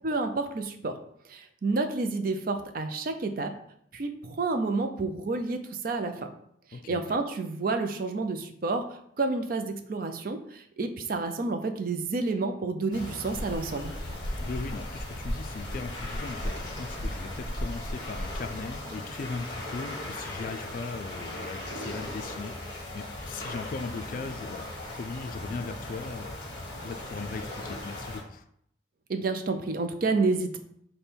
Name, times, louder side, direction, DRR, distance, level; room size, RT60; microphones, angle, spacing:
voice 1, 0.0-1.0 1.3-3.6 3.9-6.3 6.9-13.9 29.1-30.6, right 3 dB, 50° right, 6 dB, 0.4 m, -30 dB
sound 1, 12.9-28.2, left 1 dB, 25° left, 1.0 m, -39 dB
sound 2, 13.3-18.7, equal, 85° right, 1.1 m, -36 dB
voice 2, 14.4-28.4, left 4 dB, 45° left, 8 dB, 0.3 m, -38 dB
5.1 x 2.2 x 4.3 m, 0.70 s
head